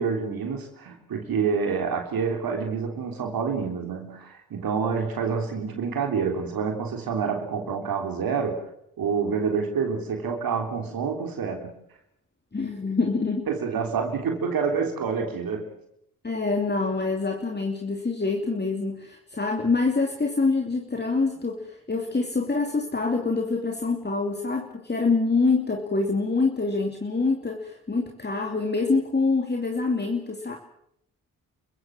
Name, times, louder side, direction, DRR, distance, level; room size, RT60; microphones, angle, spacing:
voice 1, 0.0-8.6 9.0-11.7 13.5-15.7, right 5 dB, 75° right, 3 dB, 3.5 m, -27 dB
voice 2, 12.5-13.5 16.2-30.6, left 3 dB, 30° left, 3 dB, 2.8 m, -25 dB
29.0 x 15.5 x 7.5 m, 0.76 s
cardioid pair, 55°, 35 cm